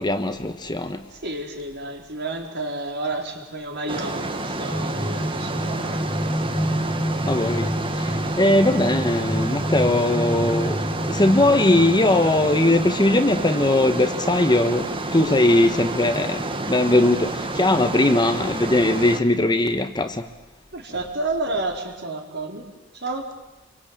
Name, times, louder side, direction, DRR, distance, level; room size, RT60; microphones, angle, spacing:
voice 1, 0.0-1.0 7.3-7.7 8.0-10.8 11.1-20.2, left 1 dB, 20° left, 8 dB, 1.3 m, -20 dB
voice 2, 1.2-6.0 20.7-22.7 22.9-23.3, right 2 dB, 55° right, 2 dB, 4.5 m, -30 dB
sound 1, 3.9-19.2, right 2 dB, 25° right, 1.8 m, -29 dB
sound 2, 4.7-12.9, equal, 5° left, 1.8 m, -28 dB
27.5 x 23.5 x 9.0 m, 1.0 s
head